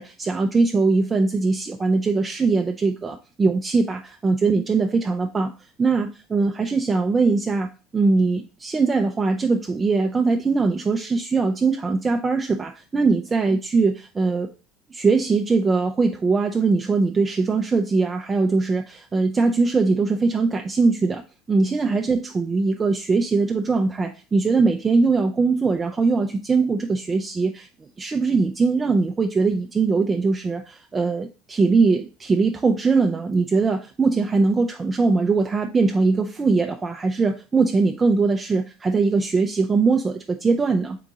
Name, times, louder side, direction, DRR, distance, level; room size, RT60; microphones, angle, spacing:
voice 1, 0.0-5.5 5.8-7.7 7.9-14.5 14.9-21.2 21.5-27.7 28.0-41.0, right 4 dB, 25° right, 4 dB, 0.4 m, -21 dB
3.8 x 3.5 x 3.9 m, 0.34 s
hypercardioid pair, 85°, 0 cm